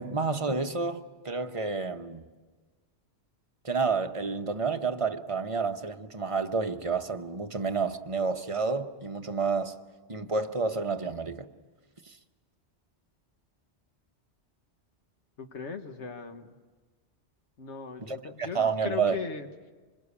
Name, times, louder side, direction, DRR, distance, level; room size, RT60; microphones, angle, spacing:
voice 1, 0.0-2.2 3.6-9.7 10.1-11.5 18.1-19.1, right 4 dB, 30° right, 1.0 m, -30 dB
voice 2, 15.4-16.6 17.6-19.5, left 6 dB, 90° left, 1.5 m, -38 dB
26.0 x 21.5 x 8.4 m
omnidirectional pair, 1.2 m